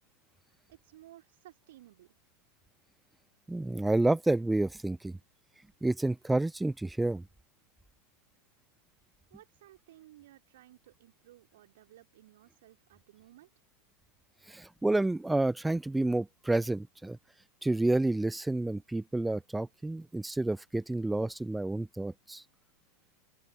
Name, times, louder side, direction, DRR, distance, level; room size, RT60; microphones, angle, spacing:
voice 1, 0.7-2.1 9.3-13.5, right 14 dB, 55° right, 3.0 m, -57 dB
voice 2, 3.5-5.2 5.8-7.2 14.5-17.2 17.6-22.4, right 2 dB, 5° right, 0.4 m, -29 dB
open air
figure-of-eight pair, 90°, 0 cm